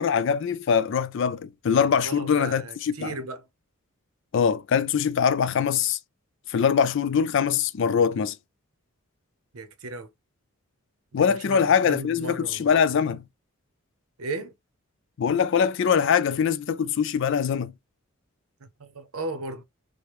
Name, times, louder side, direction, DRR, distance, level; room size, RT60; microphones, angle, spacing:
voice 1, 0.0-3.1 4.3-6.0 6.5-8.3 11.1-13.2 15.2-17.7, left 7 dB, 55° left, 0.3 m, -23 dB
voice 2, 2.0-3.4 9.5-10.1 11.3-12.8 14.2-14.5 18.8-19.6, right 2 dB, 80° right, 0.7 m, -35 dB
4.7 x 2.1 x 3.0 m
head